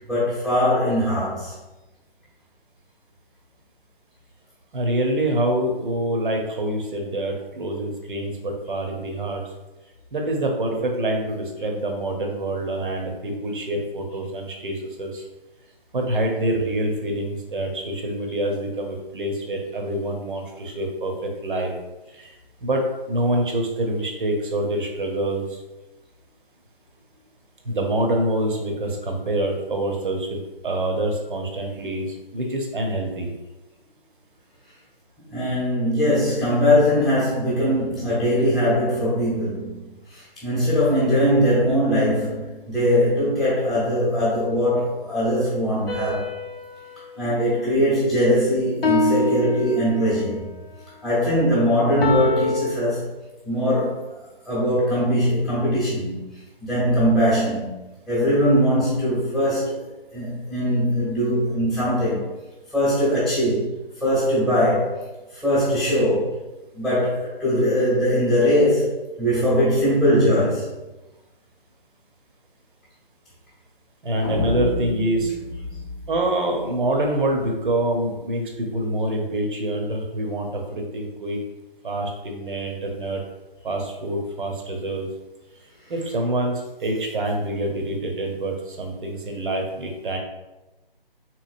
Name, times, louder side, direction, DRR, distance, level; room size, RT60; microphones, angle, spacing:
voice 1, 0.1-1.5 35.3-39.8 40.1-46.3 47.2-50.5 51.0-53.1 53.4-54.1 54.4-56.2 56.6-57.7 58.1-62.3 62.7-63.7 64.0-65.1 65.3-66.4 66.7-70.7, equal, ahead, -11 dB, 0.9 m, -21 dB
voice 2, 4.7-9.4 10.1-15.2 15.9-21.7 22.1-25.6 27.6-30.4 30.6-33.3 74.0-75.3 76.1-81.4 81.8-83.2 83.6-85.1 85.9-90.2, right 1 dB, 60° right, 2 dB, 0.9 m, -26 dB
sound 1, 45.9-48.3 48.8-50.4 52.0-52.7, left 2 dB, 85° left, 0.7 m, -26 dB
sound 2, 74.2-77.3, left 2 dB, 20° left, 0.4 m, -31 dB
3.8 x 3.0 x 2.5 m, 1.1 s
figure-of-eight pair, 155°, 29 cm